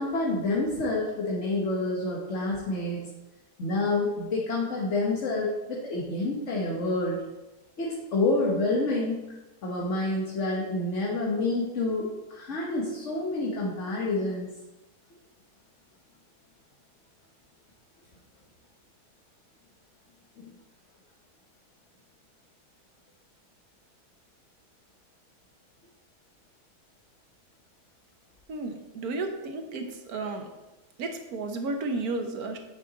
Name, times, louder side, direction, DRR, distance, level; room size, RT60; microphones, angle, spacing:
voice 1, 0.0-3.1 3.6-7.2 7.8-9.2 9.6-14.5 20.4-20.5, left 2 dB, 50° left, -3 dB, 1.4 m, -28 dB
voice 2, 28.5-30.5 31.0-32.6, right 3 dB, 70° right, 5 dB, 1.5 m, -33 dB
8.8 x 6.3 x 4.0 m, 1.0 s
omnidirectional pair, 1.7 m